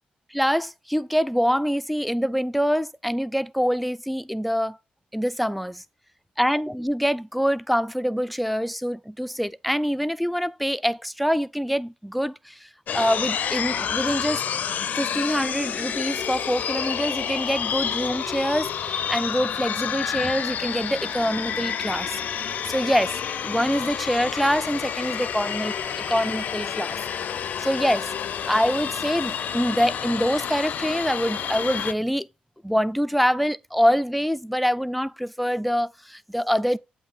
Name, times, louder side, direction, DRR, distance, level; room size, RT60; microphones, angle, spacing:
voice 1, 0.3-4.8 5.1-5.8 6.4-14.4 15.0-25.7 26.1-27.0 27.6-28.1 28.5-32.3 32.6-36.8, equal, ahead, 0.3 m, -25 dB
sound 1, 12.9-31.9, left 8 dB, 65° left, 0.4 m, -29 dB
7.8 x 2.7 x 5.9 m
cardioid pair, 70°, 3 cm